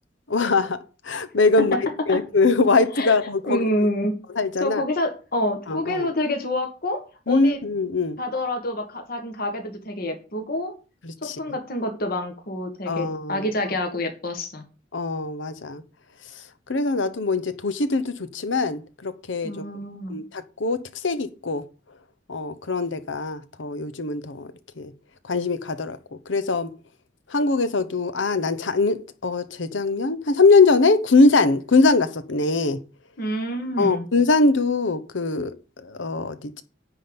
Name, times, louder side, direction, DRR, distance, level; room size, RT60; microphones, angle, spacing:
voice 1, 0.3-0.8 1.0-1.8 2.1-3.7 4.3-4.8 5.7-6.1 7.3-8.2 11.0-11.4 12.9-13.5 14.9-15.8 16.7-19.6 20.1-21.6 22.3-24.5 24.8-24.9 25.2-26.0 26.3-26.7 27.3-32.8 33.8-36.6, left 3 dB, 80° left, 0.9 m, -22 dB
voice 2, 3.4-4.1 4.6-7.6 8.2-10.7 11.2-14.6 19.4-20.2 33.2-34.0, left 1 dB, 55° left, 1.7 m, -27 dB
9.9 x 3.8 x 7.0 m
head